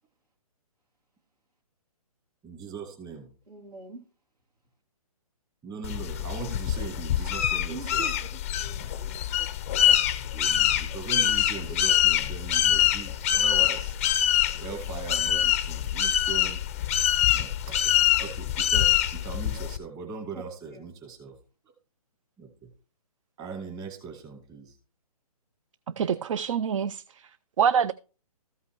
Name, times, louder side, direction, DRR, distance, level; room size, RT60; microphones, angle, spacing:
voice 1, 2.4-3.3 5.6-8.0 10.1-16.6 17.3-17.9 18.2-21.4 22.4-22.7 23.4-24.8, right 5 dB, 20° right, 1.9 m, -40 dB
voice 2, 3.5-4.0 7.7-9.5 14.7-14.8 20.3-20.8, right 4 dB, 80° right, 3.4 m, -44 dB
sound 1, 5.8-19.8, left 11 dB, 20° left, 0.4 m, -25 dB
voice 3, 26.0-27.3 27.6-27.9, right 7 dB, 55° right, 0.4 m, -25 dB
14.0 x 5.6 x 4.5 m
hypercardioid pair, 155°, 20 cm